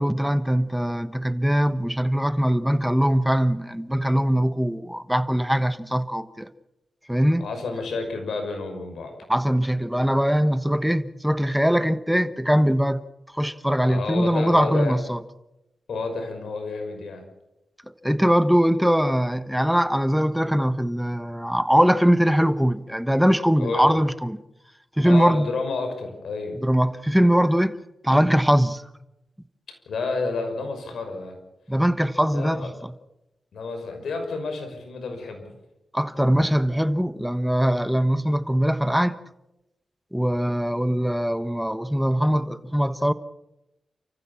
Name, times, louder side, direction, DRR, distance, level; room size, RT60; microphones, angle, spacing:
voice 1, 0.0-6.5 7.1-7.4 9.3-13.0 13.3-15.2 18.0-24.4 25.0-25.5 26.6-27.7 28.0-28.8 31.7-32.9 35.9-39.2 40.1-43.1, equal, 5° right, 1.2 m, -21 dB
voice 2, 7.4-9.2 13.9-14.9 15.9-17.2 23.6-23.9 25.0-26.5 29.9-31.3 32.3-32.7 33.5-35.5, left 3 dB, 80° left, 5.8 m, -30 dB
29.5 x 15.0 x 7.3 m
cardioid pair, 65°, 0 cm